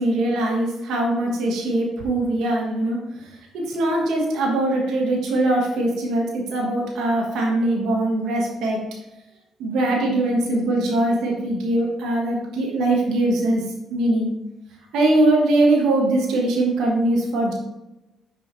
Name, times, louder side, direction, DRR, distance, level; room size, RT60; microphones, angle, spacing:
voice 1, 0.0-8.8 9.6-13.6 13.9-14.3 14.9-17.5, right 2 dB, 85° right, -1 dB, 1.4 m, -21 dB
6.4 x 4.9 x 4.0 m, 0.97 s
cardioid pair, 90°, 0 cm